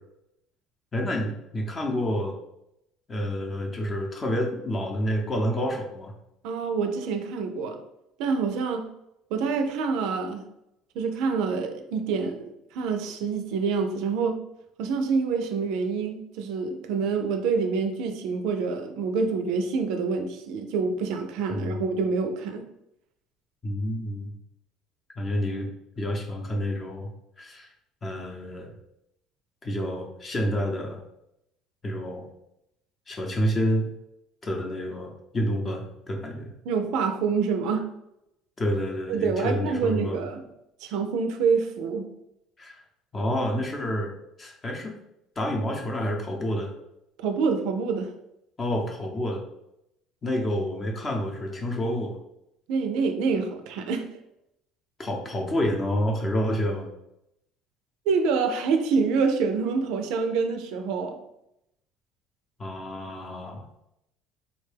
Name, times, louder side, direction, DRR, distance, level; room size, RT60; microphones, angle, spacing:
voice 1, 0.9-2.3 3.1-6.1 21.5-21.8 23.6-24.4 25.2-27.1 27.4-27.7 28.0-28.7 29.6-31.0 31.8-32.3 33.1-33.9 34.4-36.5 38.6-40.2 42.6-42.8 43.1-44.1 44.4-44.9 45.4-46.7 48.6-49.4 50.2-52.1 55.0-56.9 62.6-63.6, equal, 25° left, 1 dB, 0.7 m, -28 dB
voice 2, 6.4-7.8 8.2-8.9 9.3-10.4 10.9-14.4 14.8-22.6 36.6-37.9 39.1-40.4 40.8-42.1 47.2-48.1 52.7-54.1 58.1-61.2, right 5 dB, 75° right, 6 dB, 0.4 m, -26 dB
3.6 x 2.2 x 3.3 m, 0.83 s
cardioid pair, 120°, 0 cm